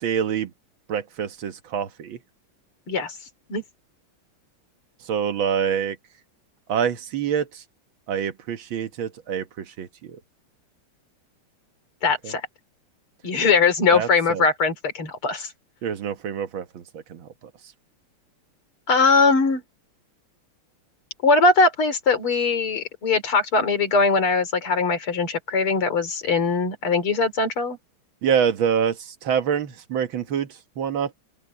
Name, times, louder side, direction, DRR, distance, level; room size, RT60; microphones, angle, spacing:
voice 1, 0.0-0.5 0.9-2.2 5.1-6.0 6.7-7.6 8.1-10.2 12.2-12.3 13.9-14.4 15.8-17.3 28.2-30.5 30.8-31.1, right 8 dB, 65° right, 2.0 m, -26 dB
voice 2, 12.0-12.4 13.2-15.5 18.9-19.6 21.2-27.8, left 4 dB, 80° left, 4.2 m, -21 dB
open air
omnidirectional pair, 2.4 m